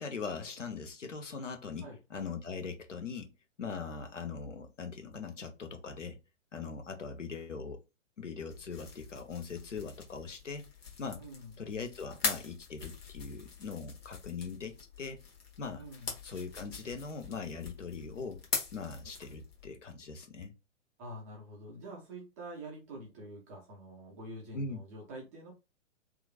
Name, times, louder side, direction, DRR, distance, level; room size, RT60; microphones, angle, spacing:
voice 1, 0.0-3.3 3.6-6.2 6.5-7.8 8.2-10.7 11.0-11.2 11.6-15.2 15.6-15.8 16.2-18.4 18.7-20.5 24.5-24.8, left 5 dB, 75° left, 0.8 m, -41 dB
sound 1, 8.5-19.7, left 4 dB, 55° left, 1.1 m, -42 dB
voice 2, 11.2-11.5 15.8-16.2 21.0-25.5, right 1 dB, 15° right, 0.4 m, -46 dB
3.0 x 2.4 x 2.4 m
figure-of-eight pair, 120°, 37 cm